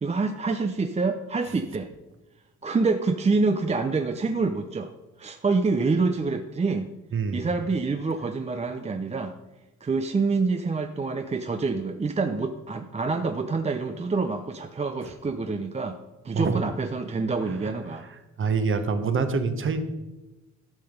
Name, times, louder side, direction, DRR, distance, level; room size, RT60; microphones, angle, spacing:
voice 1, 0.0-1.9 2.6-4.9 5.2-6.9 7.3-9.3 9.8-16.0 16.2-18.1, right 4 dB, 20° right, 7 dB, 0.6 m, -26 dB
voice 2, 7.1-7.4 16.3-16.6 17.5-17.7 18.4-19.8, right 5 dB, 40° right, 8 dB, 1.2 m, -26 dB
12.0 x 5.9 x 5.3 m, 1.1 s
cardioid pair, 90°, 30 cm